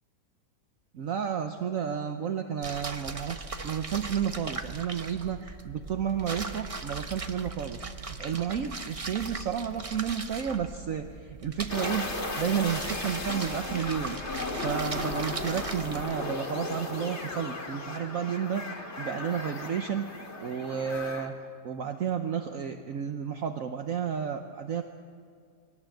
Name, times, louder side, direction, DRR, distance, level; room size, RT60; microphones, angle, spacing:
voice 1, 0.9-12.1 12.4-14.2 14.6-18.6 19.0-20.1 20.4-21.3 21.6-24.8, right 8 dB, 60° right, 6 dB, 1.2 m, -31 dB
sound 1, 2.6-16.2, right 3 dB, 30° right, 0.7 m, -39 dB
sound 2, 11.7-21.3, left 2 dB, 45° left, 2.4 m, -36 dB
22.5 x 18.0 x 7.8 m, 2.2 s
omnidirectional pair, 1.7 m